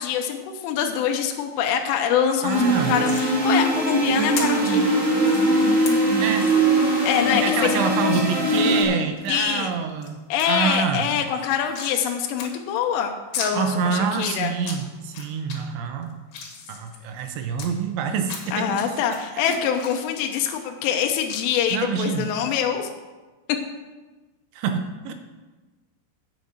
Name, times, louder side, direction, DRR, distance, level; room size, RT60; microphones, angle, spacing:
voice 1, 0.0-2.6 2.9-4.9 7.0-7.8 9.3-9.7 10.3-14.5 18.5-22.9 23.5-23.6, left 8 dB, 85° left, 3 dB, 3.4 m, -24 dB
voice 2, 2.4-3.0 6.2-6.5 7.2-10.2 10.5-11.1 13.5-16.2 16.7-18.8 19.3-19.4 21.7-22.3 24.5-25.1, right 6 dB, 80° right, 6 dB, 2.8 m, -26 dB
sound 1, 2.5-8.8, right 1 dB, 40° right, 0.9 m, -21 dB
sound 2, 3.0-3.3 4.4-4.5 5.2-5.4 5.9-6.0 6.4-6.6 7.0-7.1 7.3-7.4 8.1-8.2 8.7-9.3 9.7-10.1 10.4-10.5 10.8-12.1 12.4-12.5 12.8-12.9 13.3-13.5 14.0-14.8 15.1-15.6 16.0-17.7 18.2-18.8 19.1-21.0 21.3-21.4, left 6 dB, 65° left, 3.4 m, -34 dB
9.2 x 6.5 x 7.3 m, 1.2 s
omnidirectional pair, 5.6 m